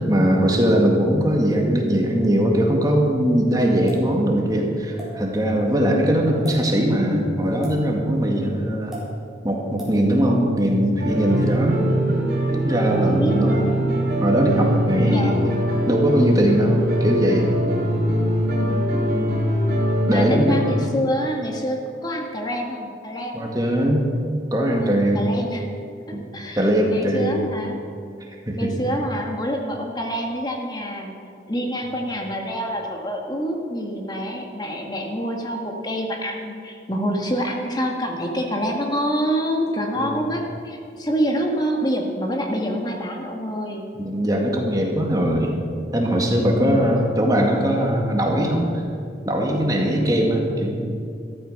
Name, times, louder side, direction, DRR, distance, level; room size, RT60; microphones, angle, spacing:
voice 1, 0.0-9.0 9.4-11.8 12.6-13.6 14.2-15.6 15.9-17.5 20.1-20.6 23.3-24.0 24.5-25.3 26.1-26.2 26.6-27.5 28.5-28.7 40.0-40.2 44.0-45.6 45.9-48.8 49.2-51.0, equal, 20° right, 0 dB, 2.0 m, -20 dB
sound 1, 3.9-4.1 5.0-5.1 6.3-6.6 7.6-7.8 8.9-9.1 9.8-10.0, equal, ahead, 4.4 m, -36 dB
voice 2, 8.3-8.7 13.0-13.7 14.9-15.5 18.5-19.4 20.1-23.5 24.8-25.7 26.1-27.8 28.6-43.9 46.5-46.9, equal, 20° left, 1 dB, 1.7 m, -27 dB
sound 2, 11.0-20.8, right 1 dB, 50° right, 3.7 m, -22 dB
13.5 x 13.5 x 6.5 m, 2.4 s
head